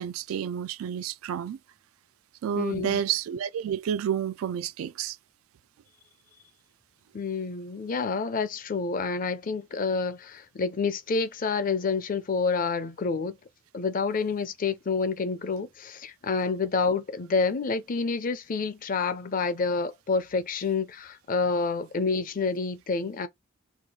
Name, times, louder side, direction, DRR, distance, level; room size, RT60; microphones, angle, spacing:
voice 1, 0.0-1.6 2.4-5.2, right 9 dB, 85° right, 0.3 m, -30 dB
voice 2, 2.5-3.0 7.1-13.4 13.7-23.3, left 4 dB, 40° left, 0.5 m, -28 dB
2.9 x 2.4 x 4.2 m
head